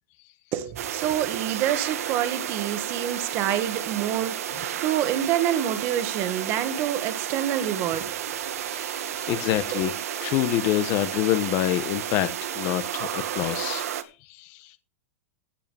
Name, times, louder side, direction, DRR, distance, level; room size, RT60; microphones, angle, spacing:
voice 1, 0.5-8.1 9.7-9.9, right 11 dB, 30° right, 1.6 m, -27 dB
sound 1, 0.8-14.0, right 10 dB, 80° right, 2.0 m, -32 dB
voice 2, 8.5-9.9 10.2-13.9 14.3-14.7, left 14 dB, 30° left, 1.0 m, -27 dB
16.0 x 5.6 x 6.9 m
supercardioid pair, 175°, 8 cm